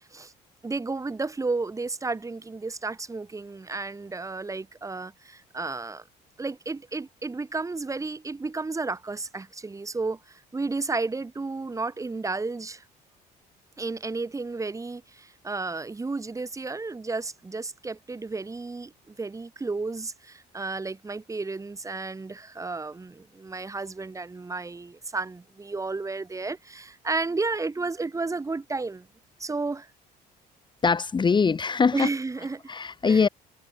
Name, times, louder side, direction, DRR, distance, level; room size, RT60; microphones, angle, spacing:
voice 1, 0.6-6.0 6.4-12.8 13.8-29.1 29.4-29.9 31.9-32.6 33.0-33.3, right 3 dB, 20° right, 2.6 m, -32 dB
voice 2, 30.8-32.1 32.7-33.3, left 5 dB, 25° left, 1.4 m, -22 dB
cardioid pair, 110°, 17 cm